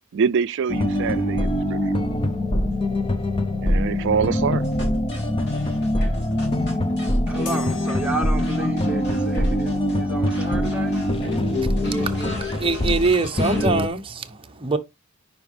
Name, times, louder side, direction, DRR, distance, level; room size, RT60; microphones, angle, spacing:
voice 1, 0.1-2.0 3.6-4.7, right 6 dB, 55° right, 0.4 m, -25 dB
sound 1, 0.7-13.1 13.4-13.9, left 1 dB, 25° left, 0.7 m, -23 dB
sound 2, 4.6-10.0 10.3-13.7, left 1 dB, 55° left, 3.2 m, -38 dB
voice 2, 7.3-11.0, right 2 dB, 5° right, 1.5 m, -31 dB
sound 3, 7.5-9.0, left 6 dB, 90° left, 1.1 m, -39 dB
voice 3, 12.6-14.3 14.6-14.8, right 3 dB, 25° right, 0.8 m, -22 dB
10.0 x 5.0 x 3.3 m
head